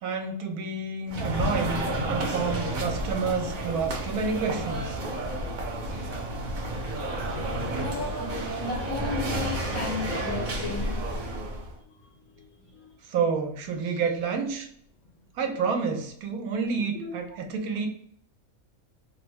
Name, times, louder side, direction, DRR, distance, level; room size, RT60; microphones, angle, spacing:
voice 1, 0.0-5.0 5.9-6.0 13.0-14.7 15.3-17.9, right 5 dB, 85° right, 4 dB, 1.1 m, -29 dB
sound 1, 1.1-11.7, right 1 dB, 50° right, 0.6 m, -31 dB
voice 2, 7.8-11.0 11.9-12.1 12.4-12.9 17.0-17.4, left 3 dB, 80° left, -8 dB, 1.4 m, -35 dB
3.3 x 2.0 x 3.4 m, 0.67 s
omnidirectional pair, 1.5 m